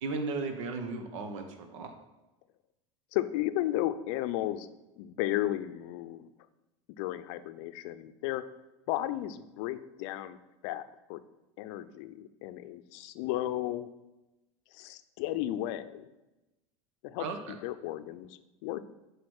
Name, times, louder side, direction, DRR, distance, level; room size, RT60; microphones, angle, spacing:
voice 1, 0.0-1.9 17.2-17.5, right 3 dB, 80° right, 6 dB, 1.0 m, -35 dB
voice 2, 3.1-4.7 5.0-6.3 7.0-8.4 8.9-10.4 10.6-10.8 11.1-11.2 11.6-13.9 14.7-16.1 17.0-18.8, left 14 dB, 65° left, 12 dB, 0.5 m, -34 dB
6.0 x 4.9 x 4.8 m, 1.0 s
supercardioid pair, 110°, 16 cm